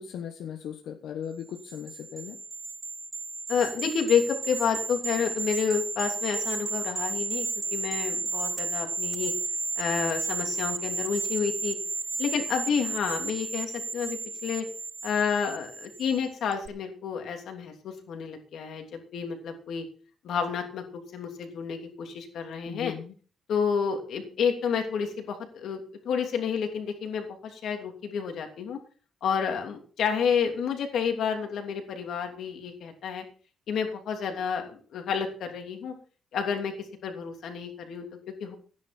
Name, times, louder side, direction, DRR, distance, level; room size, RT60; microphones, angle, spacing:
voice 1, 0.0-2.4 22.7-23.1, left 8 dB, 85° left, 6 dB, 1.2 m, -38 dB
sound 1, 1.6-16.2 16.5-16.7, right 3 dB, 20° right, 0.6 m, -33 dB
voice 2, 3.5-9.3 9.8-11.8 12.2-14.6 15.0-19.8 20.2-20.8 21.1-22.9 23.5-25.8 26.0-28.8 29.2-33.2 33.7-35.9 36.3-36.7 37.0-38.5, left 6 dB, 65° left, 4 dB, 2.9 m, -30 dB
15.0 x 10.0 x 4.4 m, 0.41 s
cardioid pair, 170°, 0 cm